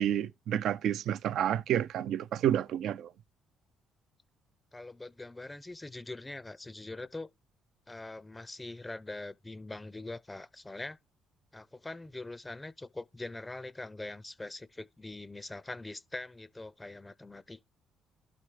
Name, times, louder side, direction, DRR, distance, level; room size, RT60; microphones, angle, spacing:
voice 1, 0.0-3.1, right 10 dB, 70° right, 0.4 m, -29 dB
voice 2, 4.7-7.3 7.9-11.0 11.5-17.6, left 2 dB, 15° left, 0.5 m, -43 dB
11.5 x 5.8 x 3.2 m
supercardioid pair, 65°, 0 cm